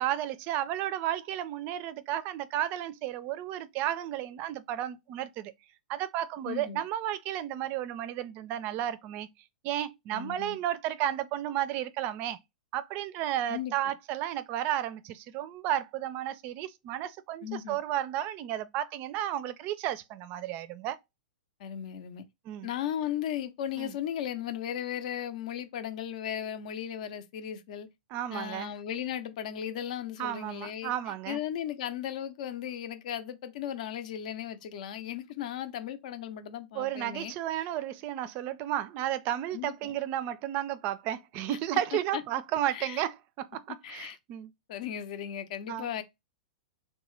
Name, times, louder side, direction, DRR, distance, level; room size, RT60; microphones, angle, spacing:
voice 1, 0.0-5.5 5.9-9.3 9.6-12.4 12.7-21.0 22.5-22.7 23.8-23.9 28.1-28.7 30.2-31.4 36.7-44.5 45.7-45.9, right 12 dB, 40° right, 0.4 m, -33 dB
voice 2, 6.4-6.8 10.1-10.6 13.5-13.7 17.4-17.8 21.6-22.2 22.6-27.9 28.3-37.3 39.5-39.9 41.5-41.6 42.1-42.2 42.7-43.0 43.8-44.2 44.7-46.0, left 10 dB, 55° left, 0.6 m, -36 dB
2.9 x 2.1 x 3.1 m
hypercardioid pair, 110°, 5 cm